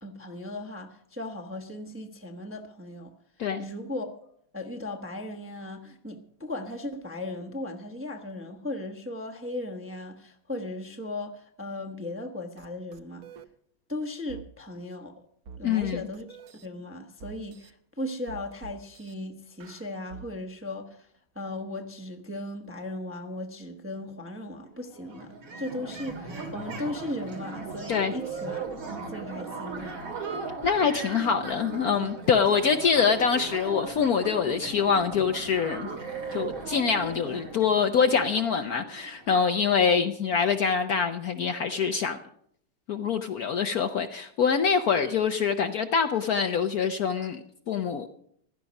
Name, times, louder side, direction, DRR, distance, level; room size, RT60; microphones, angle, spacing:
voice 1, 0.0-3.1 3.6-13.3 13.9-15.2 15.6-28.6 29.0-30.0, left 1 dB, 10° right, 0.8 m, -37 dB
sound 1, 12.6-12.7 12.9-13.5 14.3-14.5 15.4-16.7 17.2-17.7 18.3-19.1 19.6-20.3, right 6 dB, 60° right, 1.1 m, -46 dB
voice 2, 15.6-16.0 27.9-28.1 30.6-35.9 36.3-42.2 42.9-48.1, left 6 dB, 60° left, 1.0 m, -25 dB
sound 2, 24.6-24.7 24.9-39.5, right 4 dB, 85° right, 3.5 m, -38 dB
16.0 x 12.0 x 5.3 m
omnidirectional pair, 2.1 m